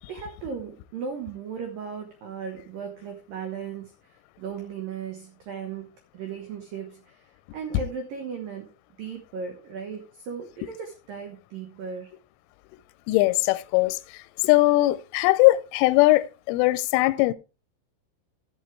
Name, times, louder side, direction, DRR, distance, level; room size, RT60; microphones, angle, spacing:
voice 1, 0.1-8.7 9.0-12.2, right 6 dB, 85° right, 1.9 m, -37 dB
voice 2, 13.1-17.3, left 19 dB, 80° left, 3.0 m, -20 dB
13.5 x 8.4 x 3.3 m
omnidirectional pair, 6.0 m